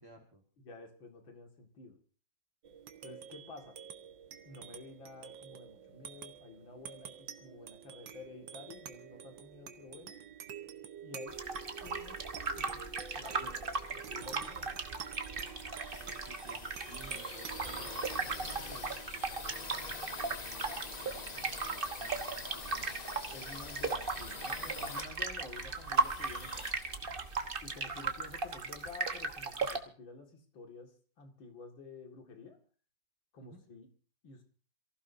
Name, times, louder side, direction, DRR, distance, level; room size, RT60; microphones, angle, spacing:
voice 1, 0.0-0.4 16.0-18.9 19.3-23.0 33.4-33.6, right 2 dB, 10° right, 2 dB, 1.5 m, -56 dB
voice 2, 0.6-2.0 3.0-3.8 4.4-10.3 11.0-11.4 11.8-12.3 12.5-14.8 18.7-18.9 23.3-26.8 27.6-32.6 33.3-33.9 34.2-34.4, left 3 dB, 85° left, 3 dB, 2.9 m, -51 dB
sound 1, 2.6-21.5, right 8 dB, 75° right, 1.8 m, -49 dB
sound 2, 11.3-29.8, right 4 dB, 35° right, 1.2 m, -37 dB
sound 3, 14.9-27.7, left 4 dB, 40° left, 0.6 m, -46 dB
27.5 x 15.5 x 2.7 m, 0.37 s
omnidirectional pair, 2.1 m